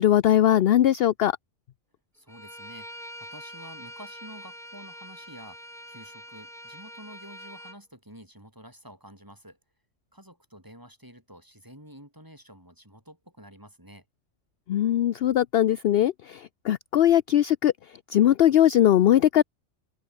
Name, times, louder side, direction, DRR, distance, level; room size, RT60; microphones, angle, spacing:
voice 1, 0.0-1.3 14.7-17.7 18.1-19.4, left 11 dB, 60° left, 0.7 m, -20 dB
voice 2, 2.1-9.6 10.1-14.1, equal, 15° right, 7.3 m, -49 dB
Bowed string instrument, 2.3-7.8, equal, ahead, 5.8 m, -44 dB
omnidirectional pair, 1.3 m